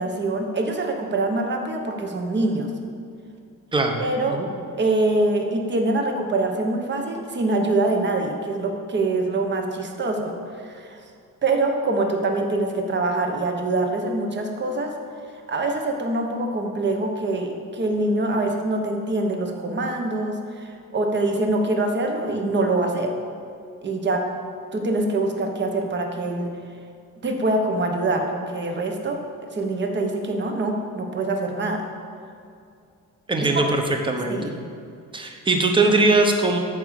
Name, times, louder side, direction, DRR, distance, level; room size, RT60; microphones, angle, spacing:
voice 1, 0.0-2.7 4.0-4.4 4.8-11.0 11.4-15.0 15.5-23.1 23.8-24.3 24.7-26.5 27.2-29.2 29.5-31.9 33.5-33.6 34.3-34.5, right 2 dB, 35° right, 3 dB, 1.2 m, -24 dB
voice 2, 3.7-4.0 4.3-4.5 33.3-34.6 35.1-36.6, right 2 dB, 15° right, 3 dB, 1.0 m, -21 dB
14.0 x 5.1 x 6.6 m, 2.4 s
cardioid pair, 145°, 33 cm